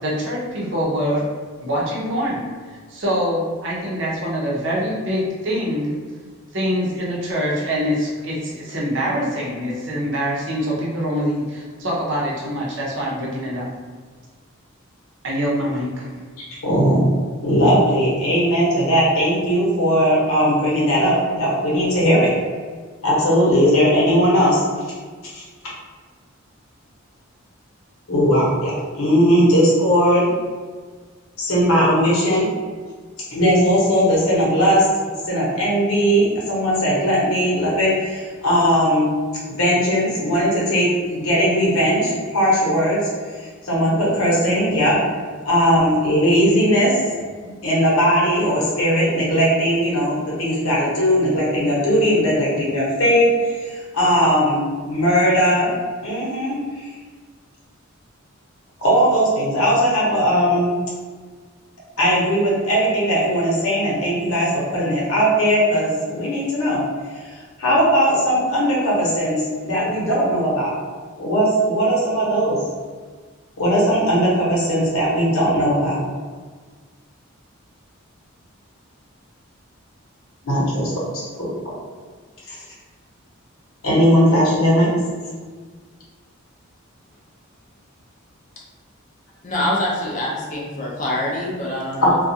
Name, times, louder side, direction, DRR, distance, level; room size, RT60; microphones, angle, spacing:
voice 1, 0.0-1.2 1.6-6.0 6.5-13.7 15.2-16.2, equal, 55° right, -4 dB, 0.7 m, -24 dB
voice 2, 16.4-17.0 17.4-22.3 23.0-24.6 25.3-25.4 28.1-30.3 31.4-32.5 33.3-34.8 35.3-39.2 39.5-43.0 43.4-45.0 45.4-47.0 47.6-55.7 56.0-56.9 58.8-60.7 62.0-66.8 67.2-70.7 71.2-72.6 73.6-76.0 80.4-81.5 82.5-82.6 83.8-84.9 92.0-92.1, equal, 80° left, -6 dB, 0.9 m, -18 dB
voice 3, 89.4-92.2, left 1 dB, 35° left, -4 dB, 0.5 m, -25 dB
2.3 x 2.2 x 2.7 m, 1.5 s
head